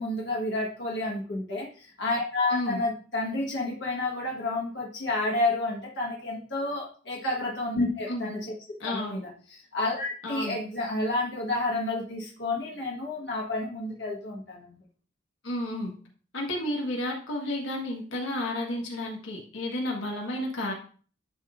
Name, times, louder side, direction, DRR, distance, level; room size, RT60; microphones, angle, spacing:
voice 1, 0.0-8.5 8.8-9.3 9.7-14.8, left 2 dB, 65° left, -3 dB, 1.4 m, -30 dB
voice 2, 2.5-2.8 8.1-8.3 8.8-9.2 10.2-10.6 15.4-15.9 16.3-20.7, left 1 dB, 90° left, -1 dB, 1.5 m, -31 dB
11.5 x 3.8 x 2.5 m, 0.41 s
head